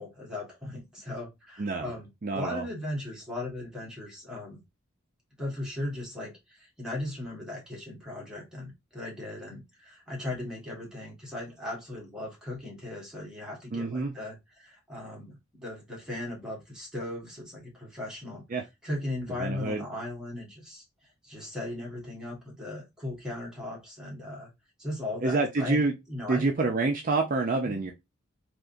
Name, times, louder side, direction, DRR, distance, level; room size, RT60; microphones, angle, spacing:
voice 1, 0.0-4.6 5.4-18.4 18.8-20.8 21.2-24.5 24.8-25.8 26.1-26.5 27.6-27.8, left 1 dB, 5° right, -3 dB, 1.5 m, -37 dB
voice 2, 1.6-1.9 2.2-2.7 13.7-14.1 18.5-18.6 19.4-19.9 25.2-25.9 26.3-27.9, right 3 dB, 40° right, 3 dB, 0.4 m, -27 dB
3.6 x 2.8 x 2.6 m, 0.21 s
head